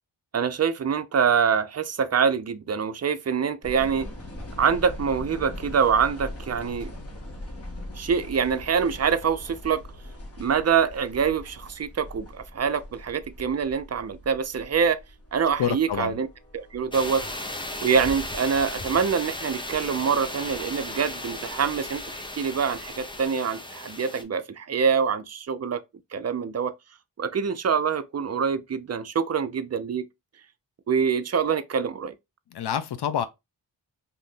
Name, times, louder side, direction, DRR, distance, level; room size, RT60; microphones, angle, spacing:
voice 1, 0.3-4.1 4.6-6.9 8.0-9.8 10.4-15.0 15.3-16.3 16.5-17.2 17.8-22.0 22.4-25.8 26.1-26.7 27.2-30.1 30.9-32.1, right 6 dB, 35° right, 0.5 m, -25 dB
sound 1, 3.6-23.2, left 1 dB, 30° left, 1.1 m, -42 dB
voice 2, 15.6-16.2 32.5-33.3, left 9 dB, 60° left, 0.5 m, -27 dB
sound 2, 16.9-24.2, left 1 dB, 10° left, 0.7 m, -35 dB
2.7 x 2.5 x 3.5 m
cardioid pair, 45°, 45 cm